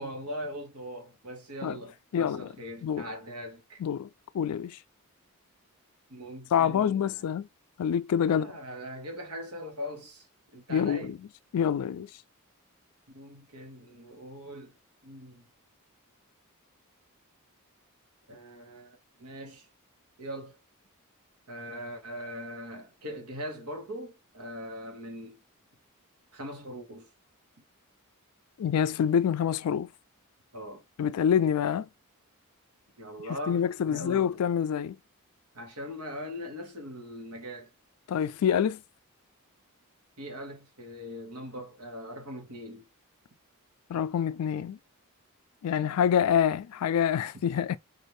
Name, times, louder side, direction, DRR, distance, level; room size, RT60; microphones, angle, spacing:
voice 1, 0.0-3.8 6.1-7.3 8.2-10.3 10.5-11.1 13.1-14.7 15.0-15.5 18.3-19.7 20.2-20.6 21.5-25.4 26.3-27.1 30.5-30.8 33.0-34.3 35.5-37.7 40.2-42.9, equal, 80° right, 1.5 m, -41 dB
voice 2, 2.1-2.5 2.8-3.0 3.8-4.1 4.3-4.8 6.5-7.5 7.8-8.5 10.7-11.2 11.5-12.1 28.6-29.9 31.0-31.9 33.5-35.0 38.1-38.8 43.9-44.8 45.6-47.8, left 8 dB, 75° left, 0.3 m, -26 dB
4.2 x 2.7 x 3.2 m
head